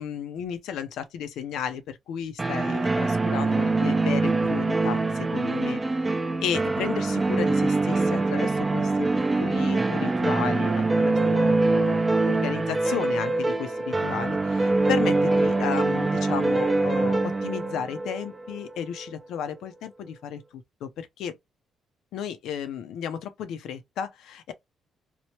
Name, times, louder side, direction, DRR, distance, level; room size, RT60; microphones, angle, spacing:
voice 1, 0.0-9.1 9.4-21.4 22.1-24.5, left 8 dB, 85° left, 0.5 m, -34 dB
sound 1, 2.4-19.1, right 3 dB, 25° right, 0.5 m, -24 dB
3.0 x 2.1 x 2.8 m
cardioid pair, 85°, 0 cm